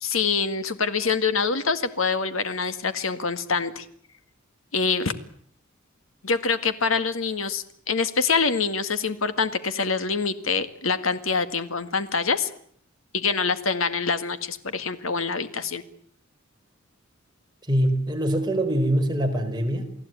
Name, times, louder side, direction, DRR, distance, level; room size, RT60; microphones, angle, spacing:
voice 1, 0.0-3.9 4.7-5.1 6.2-12.5 13.1-15.8, left 5 dB, 85° left, 10 dB, 1.9 m, -25 dB
voice 2, 17.7-19.9, right 1 dB, 20° right, 3 dB, 4.6 m, -23 dB
29.0 x 18.0 x 9.2 m, 0.64 s
head